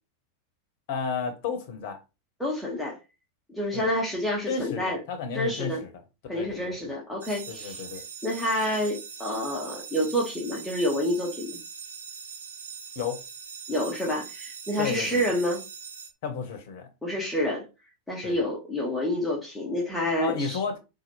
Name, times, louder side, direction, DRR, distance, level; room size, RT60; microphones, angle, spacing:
voice 1, 0.9-2.0 3.7-3.9 4.5-5.9 6.3-6.9 7.5-8.0 13.0-13.2 14.8-15.2 16.2-16.9 18.2-18.4 20.2-20.8, left 6 dB, 50° left, 0.8 m, -32 dB
voice 2, 2.4-3.0 3.5-5.0 5.3-5.8 6.3-7.8 8.2-11.6 13.7-15.6 17.0-17.7 18.1-20.6, equal, 5° left, 0.9 m, -28 dB
sound 1, 7.2-16.1, right 6 dB, 70° right, 0.6 m, -42 dB
4.0 x 2.3 x 2.9 m
figure-of-eight pair, 90°, 0 cm